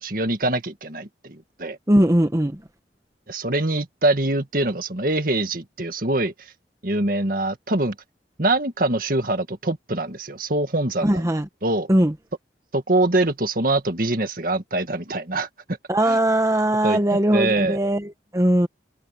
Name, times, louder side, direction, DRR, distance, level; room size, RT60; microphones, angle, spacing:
voice 1, 0.0-1.8 3.3-6.3 6.8-8.0 8.4-11.3 11.6-11.9 12.7-15.5 16.1-16.2 16.8-17.0 17.3-17.8, right 2 dB, 50° right, 2.0 m, -24 dB
voice 2, 1.9-2.6 11.0-11.4 11.9-12.1 15.9-18.7, right 1 dB, 20° right, 1.0 m, -20 dB
head